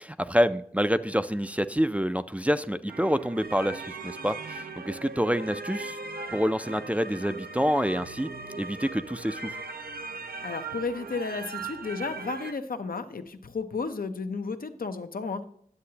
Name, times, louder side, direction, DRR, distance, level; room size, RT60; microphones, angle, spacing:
voice 1, 0.0-6.0 6.3-8.3 8.6-9.6, equal, 10° right, 11 dB, 0.3 m, -27 dB
sound 1, 2.9-12.5, right 3 dB, 90° right, 0.6 m, -39 dB
voice 2, 10.4-15.4, left 4 dB, 80° left, 8 dB, 0.7 m, -33 dB
9.8 x 7.6 x 2.8 m, 0.64 s
wide cardioid pair, 55°, 15 cm